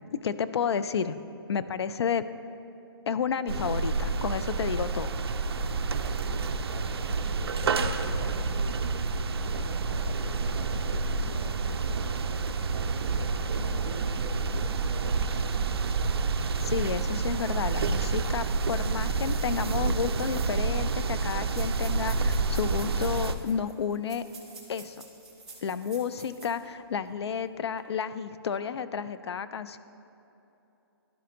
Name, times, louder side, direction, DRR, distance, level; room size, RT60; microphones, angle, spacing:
voice 1, 0.2-1.2 1.5-2.2 3.1-5.1 16.6-24.2 24.7-25.0 25.6-29.8, left 7 dB, 80° left, 13 dB, 0.4 m, -31 dB
sound 1, 3.5-23.3, right 4 dB, 70° right, 0.4 m, -29 dB
voice 2, 5.3-8.5 9.5-15.5, right 3 dB, 35° right, 1 dB, 0.7 m, -45 dB
sound 2, 21.3-26.7 27.1-27.2 27.6-27.8, right 3 dB, 5° right, 0.5 m, -49 dB
12.0 x 5.1 x 2.9 m, 2.9 s
hypercardioid pair, 170°, 14 cm